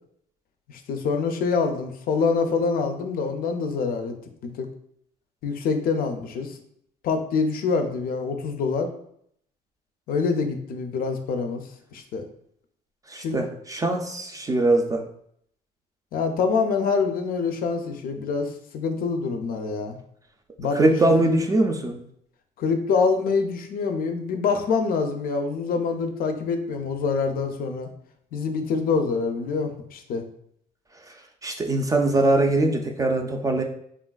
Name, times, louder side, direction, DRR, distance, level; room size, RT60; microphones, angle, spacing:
voice 1, 0.7-4.1 4.4-4.7 5.4-6.6 7.0-8.9 10.1-11.6 11.9-12.2 13.2-13.4 16.1-20.0 20.6-21.1 22.6-27.9 28.3-30.2, left 4 dB, 60° left, 5 dB, 0.4 m, -25 dB
voice 2, 13.1-15.0 20.7-22.0 31.4-33.6, right 2 dB, 20° right, 3 dB, 0.3 m, -22 dB
3.4 x 2.4 x 2.2 m, 0.68 s
cardioid pair, 110°, 17 cm